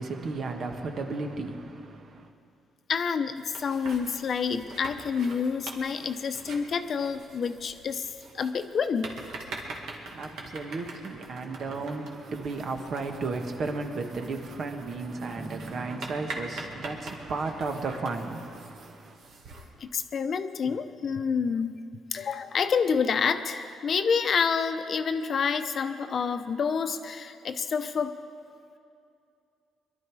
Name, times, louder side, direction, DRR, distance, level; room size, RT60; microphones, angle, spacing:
voice 1, 0.0-2.3 9.5-19.2, right 3 dB, 60° right, 1.5 m, -34 dB
voice 2, 2.9-8.1 8.3-9.1 19.8-21.8 22.1-28.2, left 6 dB, 55° left, 0.8 m, -28 dB
sound 1, 3.4-19.7, right 2 dB, 75° right, 2.1 m, -44 dB
sound 2, 15.4-18.4, right 1 dB, 15° right, 0.8 m, -46 dB
22.0 x 12.0 x 4.8 m
cardioid pair, 90°, 0 cm